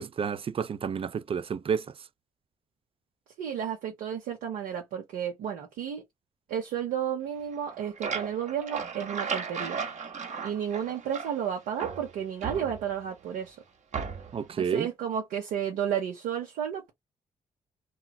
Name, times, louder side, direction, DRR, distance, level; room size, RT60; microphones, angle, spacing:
voice 1, 0.0-1.9 14.3-14.9, right 7 dB, 40° right, 0.4 m, -30 dB
voice 2, 3.4-6.0 6.5-9.8 10.4-13.6 14.5-16.9, right 9 dB, 85° right, 0.7 m, -32 dB
sound 1, 7.5-11.5 11.8-13.1 13.9-14.5, right 5 dB, 55° right, 0.8 m, -36 dB
3.0 x 2.3 x 2.2 m
supercardioid pair, 50°, 14 cm